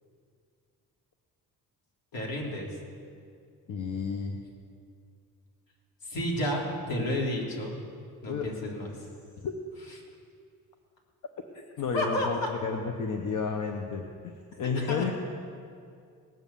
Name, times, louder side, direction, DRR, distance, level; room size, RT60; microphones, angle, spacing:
voice 1, 2.1-2.7 6.0-7.8 8.2-9.1 9.9-10.0 11.9-12.5 14.7-15.1, left 1 dB, 75° left, -2 dB, 3.2 m, -31 dB
voice 2, 3.7-4.4 8.3-8.5 9.4-9.5 11.5-14.1 14.6-15.1, left 5 dB, 60° left, 4 dB, 1.1 m, -31 dB
18.5 x 7.4 x 7.0 m, 2.3 s
cardioid pair, 95°, 36 cm